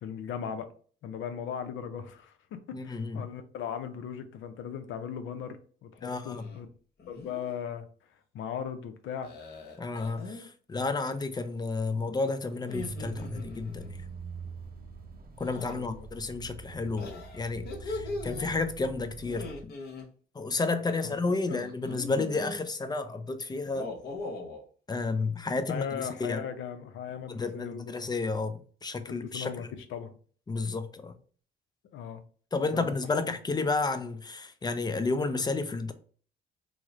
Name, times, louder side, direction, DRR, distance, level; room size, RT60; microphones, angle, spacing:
voice 1, 0.0-0.7 1.0-2.3 2.7-6.7 7.1-7.9 8.3-9.3 15.5-16.0 21.0-21.6 25.7-27.9 29.1-30.2 31.9-32.2 32.7-32.9, left 8 dB, 75° left, 0.5 m, -38 dB
voice 2, 2.7-3.3 6.0-6.4 9.8-13.9 15.4-19.7 20.4-23.9 24.9-26.4 27.3-29.7 30.5-31.1 32.5-35.9, left 3 dB, 20° left, 0.4 m, -31 dB
sound 1, 6.3-6.6 7.0-7.5 9.2-10.5 12.5-13.9 15.4-15.8 17.0-18.5 19.2-20.1 21.5-22.6 23.6-24.6, left 3 dB, 55° left, 0.8 m, -40 dB
sound 2, 12.7-19.6, right 4 dB, 50° right, 0.6 m, -43 dB
3.0 x 2.0 x 3.6 m
cardioid pair, 90°, 20 cm